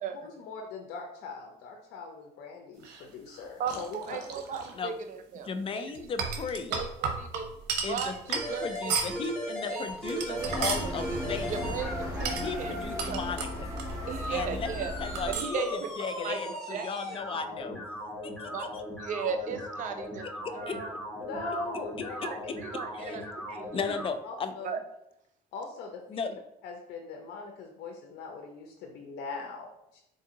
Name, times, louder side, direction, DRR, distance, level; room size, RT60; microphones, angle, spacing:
voice 1, 0.2-4.0 21.2-22.3 23.1-23.2 24.2-24.8 25.5-26.3 26.6-30.0, left 3 dB, 85° left, 2 dB, 0.6 m, -41 dB
sound 1, 2.8-4.7 5.9-9.3 9.9-10.9 12.2-14.3 14.5-14.6 15.2-15.6, right 5 dB, 85° right, 0.7 m, -34 dB
voice 2, 3.6-5.9 6.7-7.5 7.9-8.2 8.5-9.0 9.7-9.8 10.1-10.5 10.8-11.0 11.5-12.7 13.1-13.2 14.1-14.9 15.4-15.7 16.2-16.9 18.4-18.7 19.0-20.9 22.2-23.2 23.5-24.0 24.6-24.8, right 6 dB, 50° right, 7 dB, 0.5 m, -36 dB
voice 3, 5.4-6.8 7.8-11.8 12.4-13.7 14.3-15.6 16.0-17.8 18.2-18.8 20.4-20.8 22.0-22.6 22.9-23.2 23.7-24.5 26.1-26.4, left 5 dB, 35° left, 9 dB, 0.4 m, -36 dB
sound 2, 8.3-24.1, equal, ahead, 1.0 m, -38 dB
sound 3, 10.4-15.3, left 1 dB, 20° right, 1.1 m, -36 dB
3.7 x 2.7 x 3.7 m, 0.80 s
cardioid pair, 110°, 17 cm